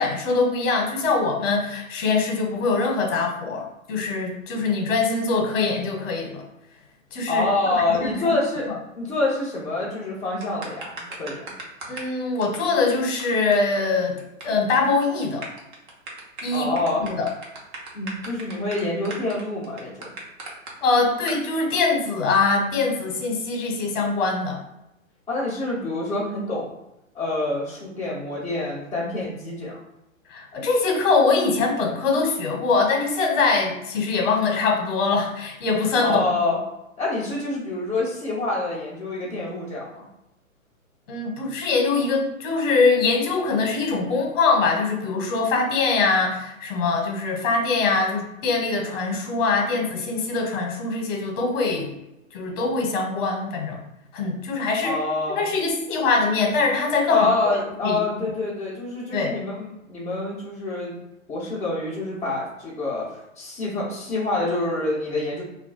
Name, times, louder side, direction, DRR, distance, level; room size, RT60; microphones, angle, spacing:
voice 1, 0.0-6.4 7.1-7.5 7.9-8.4 8.7-8.8 11.9-15.4 16.4-16.7 17.0-17.3 20.8-24.6 30.3-36.2 41.1-51.9 52.3-53.8 54.1-54.9 55.3-57.5 57.8-58.0 59.1-59.3, left 4 dB, 40° left, 0 dB, 0.8 m, -23 dB
voice 2, 7.3-8.7 9.0-11.5 16.5-17.1 17.9-20.1 25.3-26.7 27.1-29.8 36.0-36.6 37.0-40.0 54.8-55.5 57.1-61.0 61.3-65.4, left 2 dB, 5° left, -12 dB, 0.5 m, -26 dB
sound 1, 10.4-12.1 12.4-12.6 12.9-13.0 13.2-13.3 13.5-13.6 13.8-14.4 14.7-14.9 15.2-20.7 21.3-21.4, right 3 dB, 35° right, 0.7 m, -37 dB
2.3 x 2.2 x 3.8 m, 0.91 s
hypercardioid pair, 130°, 41 cm